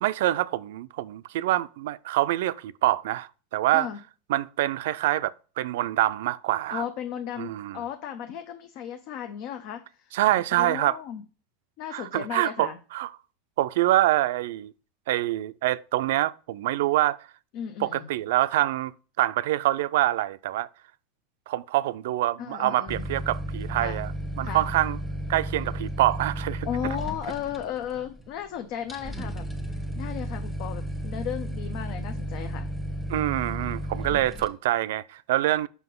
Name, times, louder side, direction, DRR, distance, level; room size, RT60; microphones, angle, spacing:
voice 1, 0.0-3.9 4.3-6.8 7.4-7.8 10.1-11.0 11.9-13.1 13.6-14.7 15.1-17.2 17.8-20.7 21.5-24.1 24.4-25.0 25.3-27.0 33.1-35.7, right 15 dB, 75° right, 0.3 m, -25 dB
voice 2, 6.7-10.1 10.6-11.2 11.8-12.8 17.5-18.1 22.4-23.1 23.8-24.0 24.4-24.6 26.6-29.4 30.0-32.7, left 9 dB, 60° left, 0.6 m, -35 dB
sound 1, 22.9-34.5, right 1 dB, 5° left, 1.0 m, -33 dB
5.8 x 5.6 x 3.7 m
supercardioid pair, 125°, 0 cm